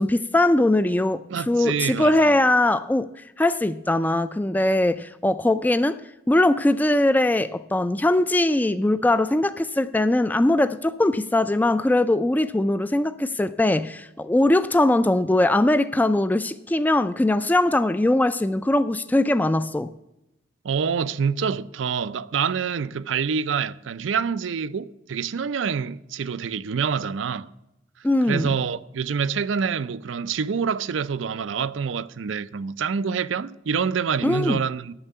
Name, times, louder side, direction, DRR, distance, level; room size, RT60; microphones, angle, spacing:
voice 1, 0.0-3.1 3.4-6.0 6.3-19.9 28.0-28.5 34.2-34.6, left 1 dB, 10° left, 0.3 m, -21 dB
voice 2, 1.3-2.4 20.6-27.5 28.3-34.9, right 6 dB, 85° right, 0.5 m, -26 dB
8.8 x 6.6 x 8.1 m
head